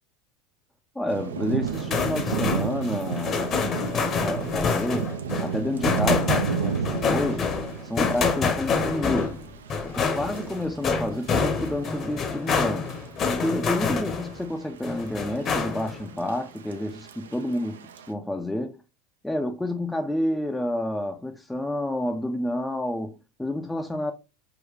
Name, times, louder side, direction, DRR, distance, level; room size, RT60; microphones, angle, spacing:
voice 1, 1.0-7.5 7.8-9.4 9.8-13.0 13.3-18.8 19.2-24.1, left 1 dB, 5° left, 0.4 m, -29 dB
Thunder / Rain, 1.1-18.1, right 7 dB, 90° right, 0.4 m, -34 dB
sound 1, 1.7-14.4 14.8-16.0, left 5 dB, 40° left, 0.8 m, -27 dB
3.8 x 2.2 x 3.1 m
hypercardioid pair, 95°, 0 cm